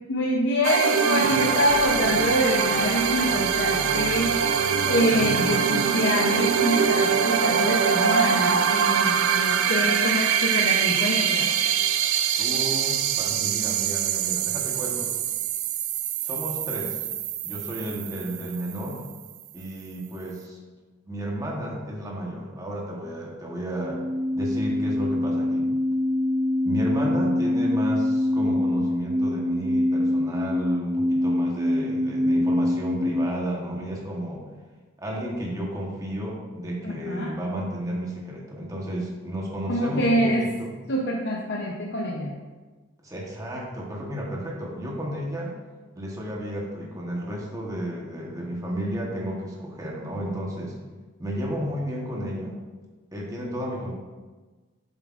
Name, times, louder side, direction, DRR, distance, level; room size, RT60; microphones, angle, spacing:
voice 1, 0.1-4.4 4.9-11.5 36.8-37.3 39.7-40.5 40.9-42.4, equal, 55° left, -2 dB, 0.7 m, -25 dB
sound 1, 0.6-19.1, right 7 dB, 80° right, 0.4 m, -24 dB
voice 2, 12.4-15.1 16.2-17.0 17.4-19.0 19.5-20.6 21.1-24.0 24.3-25.7 26.6-34.4 35.0-40.7 43.0-45.5 45.9-50.8 51.2-52.6 53.1-53.9, equal, 15° right, -2 dB, 1.1 m, -32 dB
sound 2, 23.7-33.3, left 1 dB, ahead, 1.8 m, -24 dB
8.2 x 7.5 x 2.5 m, 1.3 s
head